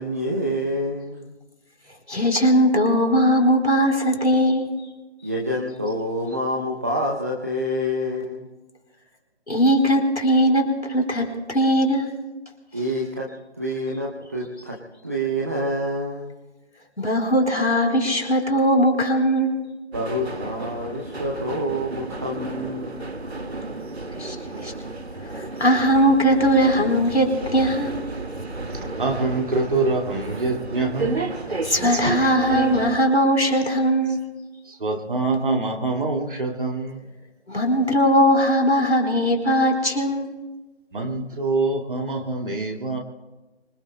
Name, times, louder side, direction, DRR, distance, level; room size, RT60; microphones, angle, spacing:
voice 1, 0.0-1.3 5.2-8.5 12.7-13.3 13.5-16.3 19.9-23.1, equal, 15° right, -2 dB, 0.7 m, -27 dB
voice 2, 2.1-4.7 9.5-12.1 17.0-19.6 24.2-24.7 25.3-27.9 31.6-34.2 37.5-40.3, equal, 85° left, 3 dB, 4.2 m, -19 dB
sound 1, 19.9-33.0, right 3 dB, 75° right, 2.0 m, -31 dB
voice 3, 28.7-31.3 31.9-32.3 34.7-37.0 40.9-43.0, right 3 dB, 50° right, 1 dB, 2.2 m, -25 dB
25.0 x 24.5 x 2.2 m, 1.1 s
figure-of-eight pair, 155°, 33 cm